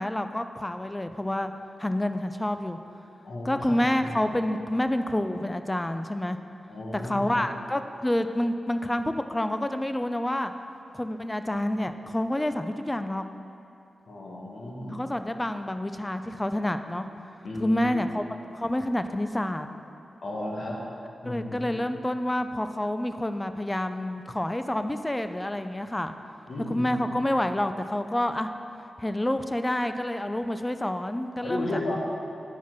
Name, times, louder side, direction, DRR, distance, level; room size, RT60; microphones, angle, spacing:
voice 1, 0.0-1.5 1.8-2.8 3.4-6.4 6.9-10.5 10.9-13.2 14.9-17.1 17.6-18.2 18.5-19.7 21.2-26.1 26.7-28.5 29.0-31.8, left 1 dB, 15° left, 9 dB, 0.4 m, -28 dB
voice 2, 3.2-4.1 6.7-7.5 14.1-15.0 17.4-18.0 20.2-20.8 21.2-21.8 26.5-27.0 31.4-32.0, left 1 dB, 70° left, -3 dB, 1.6 m, -34 dB
8.5 x 4.6 x 6.0 m, 2.6 s
cardioid pair, 65°, 0 cm